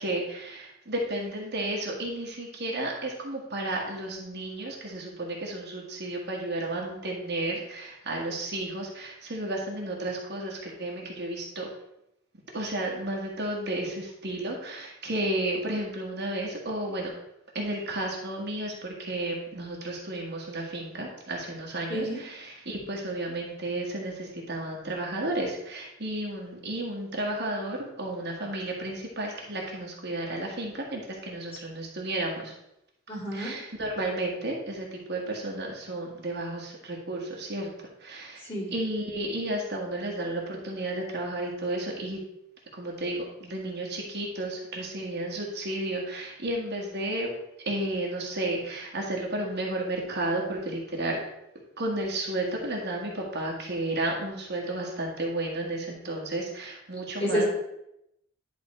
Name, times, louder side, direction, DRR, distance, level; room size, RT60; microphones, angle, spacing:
voice 1, 0.0-11.7 12.5-17.1 17.6-32.5 33.3-37.7 38.0-38.4 38.7-42.2 42.7-47.3 47.7-51.2 51.8-57.5, right 1 dB, 55° right, -1 dB, 1.7 m, -32 dB
voice 2, 33.1-33.5 38.5-38.7 57.2-57.5, equal, 30° left, -6 dB, 3.3 m, -28 dB
10.5 x 4.1 x 4.3 m, 0.82 s
head